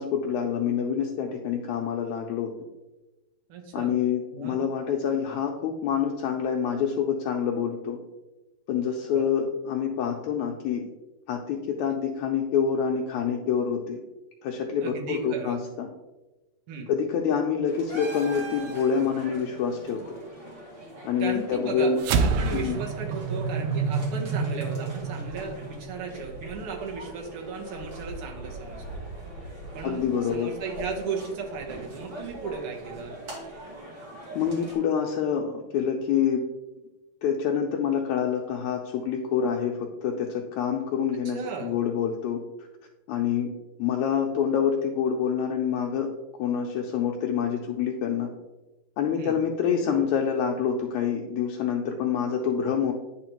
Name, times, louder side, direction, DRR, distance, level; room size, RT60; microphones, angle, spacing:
voice 1, 0.0-2.5 3.7-8.0 8.7-10.9 11.3-14.0 14.4-15.9 16.9-20.2 21.0-22.0 22.6-22.8 29.8-30.5 34.4-36.4 37.2-42.4 43.1-43.5 43.8-46.1 46.4-48.3 49.0-52.9, left 7 dB, 80° left, 2 dB, 1.8 m, -27 dB
voice 2, 3.5-3.9 4.3-4.6 9.1-9.3 14.8-15.6 16.7-16.9 21.2-21.9 22.2-29.0 29.7-33.1 41.3-41.7 49.2-49.4, right 5 dB, 65° right, 1 dB, 1.4 m, -36 dB
sound 1, 17.7-34.8, right 1 dB, 45° right, 2.3 m, -41 dB
sound 2, 22.0-26.6, right 5 dB, 85° right, 1.5 m, -28 dB
10.0 x 4.2 x 2.9 m, 1.1 s
omnidirectional pair, 3.5 m